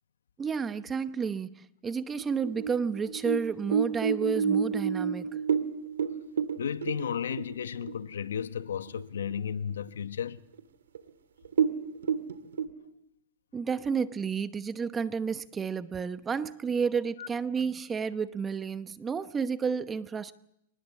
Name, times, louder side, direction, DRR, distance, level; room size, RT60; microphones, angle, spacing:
voice 1, 0.4-5.3 13.5-20.3, right 6 dB, 20° right, 0.9 m, -31 dB
sound 1, 2.2-8.0 8.4-8.5 8.9-9.4 9.8-9.9 10.6-10.7 10.9-11.1 11.5-12.6, right 7 dB, 90° right, 2.1 m, -29 dB
voice 2, 6.6-10.4 17.2-17.3, left 8 dB, 90° left, 1.0 m, -33 dB
24.5 x 19.5 x 8.3 m
hypercardioid pair, 130°, 0 cm